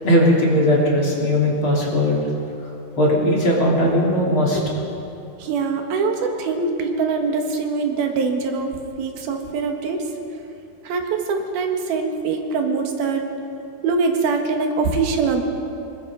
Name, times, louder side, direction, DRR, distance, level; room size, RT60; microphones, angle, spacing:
voice 1, 0.0-2.2 3.0-4.6, left 1 dB, 35° left, -3 dB, 3.9 m, -18 dB
voice 2, 5.4-10.0 10.9-13.3 13.8-15.4, right 4 dB, 90° right, 3 dB, 3.6 m, -23 dB
25.5 x 21.0 x 5.2 m, 2.7 s
omnidirectional pair, 4.3 m